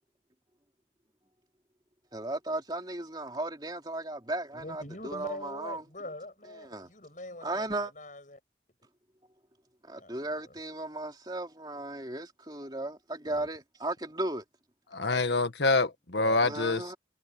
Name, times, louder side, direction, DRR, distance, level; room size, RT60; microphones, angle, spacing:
voice 1, 2.1-5.8 6.6-6.9 7.4-7.9 9.8-14.4 16.4-17.0, right 2 dB, 25° right, 3.1 m, -36 dB
voice 2, 4.5-8.4 10.0-10.5 13.2-13.5 16.2-16.8, left 1 dB, 45° left, 7.5 m, -43 dB
voice 3, 14.9-16.9, left 3 dB, 70° left, 1.8 m, -26 dB
head